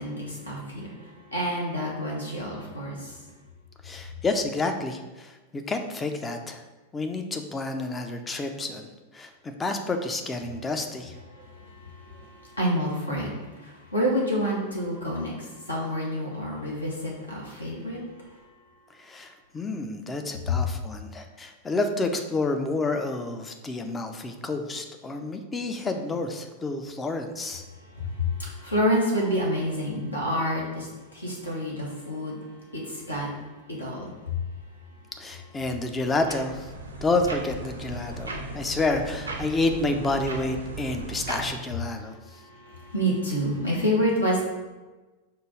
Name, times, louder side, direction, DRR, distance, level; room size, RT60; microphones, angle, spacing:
voice 1, 0.0-3.2 11.3-18.4 27.7-32.4 32.7-33.3 33.7-34.4 42.3-44.4, equal, 80° left, -4 dB, 1.3 m, -29 dB
voice 2, 3.8-6.6 6.9-11.2 19.0-27.6 35.2-36.7 37.0-42.2, left 2 dB, 15° left, 5 dB, 0.5 m, -29 dB
sound 1, 35.8-41.5, right 2 dB, 80° right, 0.6 m, -37 dB
4.6 x 2.4 x 4.8 m, 1.2 s
figure-of-eight pair, 90°, 0 cm